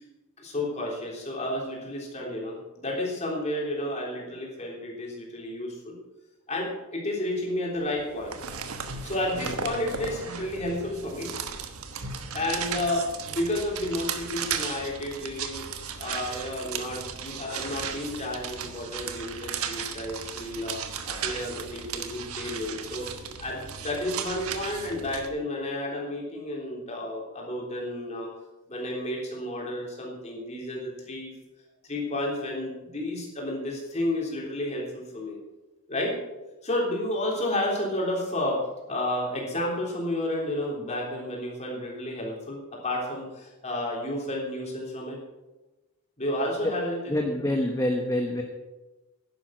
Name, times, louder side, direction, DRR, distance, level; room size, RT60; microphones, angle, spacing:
voice 1, 0.4-6.0 6.5-8.4 9.0-11.3 12.3-15.7 16.0-23.1 23.4-28.3 28.7-31.3 31.9-35.4 35.9-36.2 36.6-38.6 38.9-45.2 46.2-47.1, left 1 dB, 30° left, -2 dB, 3.5 m, -31 dB
sound 1, 8.0-25.3, right 6 dB, 75° right, 1.2 m, -36 dB
voice 2, 47.1-48.4, left 1 dB, 15° left, 2 dB, 1.0 m, -26 dB
11.0 x 10.5 x 6.3 m, 1.1 s
head